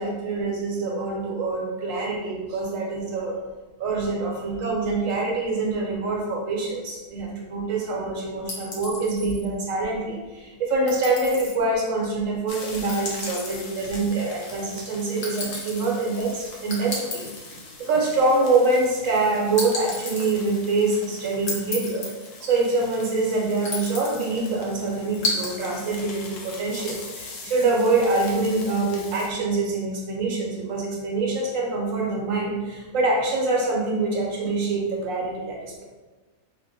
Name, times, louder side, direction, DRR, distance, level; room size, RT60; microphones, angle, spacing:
voice 1, 0.0-3.4 3.8-17.3 17.8-22.1 22.4-35.8, right 3 dB, 70° right, -2 dB, 1.0 m, -25 dB
sound 1, 8.5-9.5 10.9-11.5 12.9-13.7 15.2-15.9 16.7-17.4 19.6-20.3 21.5-22.3 23.7-24.3 25.2-25.5, left 2 dB, 50° left, 0.7 m, -31 dB
sound 2, 12.5-29.3, left 3 dB, 70° left, 1.0 m, -42 dB
2.7 x 2.1 x 3.9 m, 1.2 s
omnidirectional pair, 1.5 m